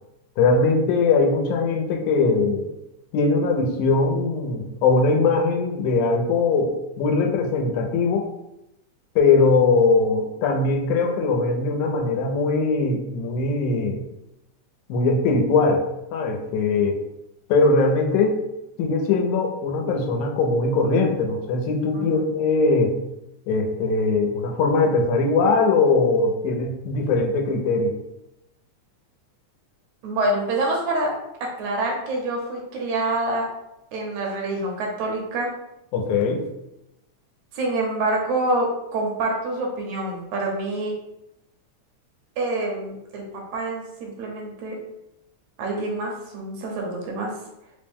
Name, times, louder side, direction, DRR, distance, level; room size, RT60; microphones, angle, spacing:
voice 1, 0.4-2.7 3.1-8.3 9.2-14.0 14.9-15.8 16.1-17.0 17.5-18.4 18.8-23.0 23.5-27.9 35.9-36.4, left 3 dB, 80° left, 2 dB, 2.0 m, -21 dB
voice 2, 30.0-31.2 31.4-33.5 33.9-35.5 37.6-41.0 42.4-44.8 45.6-47.3, right 2 dB, 75° right, 0 dB, 2.0 m, -26 dB
5.0 x 2.1 x 3.4 m, 0.87 s
omnidirectional pair, 3.4 m